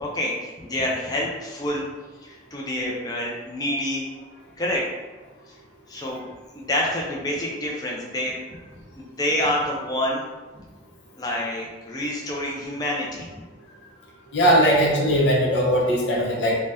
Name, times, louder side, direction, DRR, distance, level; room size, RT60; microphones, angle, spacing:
voice 1, 0.0-1.9 2.2-4.0 4.6-4.8 5.9-6.2 6.5-8.3 9.0-10.2 10.5-10.7 11.1-13.3 14.6-14.8, left 1 dB, 20° left, -2 dB, 0.4 m, -27 dB
voice 2, 14.3-16.6, equal, 85° left, -2 dB, 0.7 m, -20 dB
2.6 x 2.1 x 3.3 m, 1.2 s
head